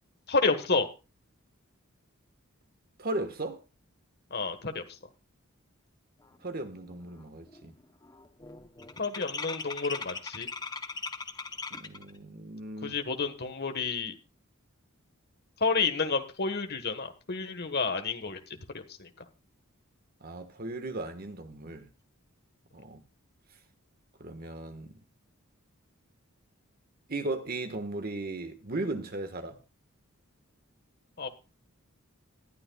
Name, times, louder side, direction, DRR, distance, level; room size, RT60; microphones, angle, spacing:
voice 1, 0.3-0.9 4.3-4.8 9.0-10.5 12.8-14.1 15.6-18.4 18.7-19.1 31.2-31.3, left 4 dB, 45° left, 1.4 m, -30 dB
voice 2, 3.0-3.6 6.4-7.7 11.7-13.0 20.2-21.9 22.7-23.0 24.2-25.0 27.1-29.6, right 2 dB, 40° right, 1.4 m, -36 dB
sound 1, 6.4-6.5 6.8-7.2 7.5-12.1, left 4 dB, 20° left, 0.8 m, -39 dB
19.5 x 12.0 x 2.3 m
head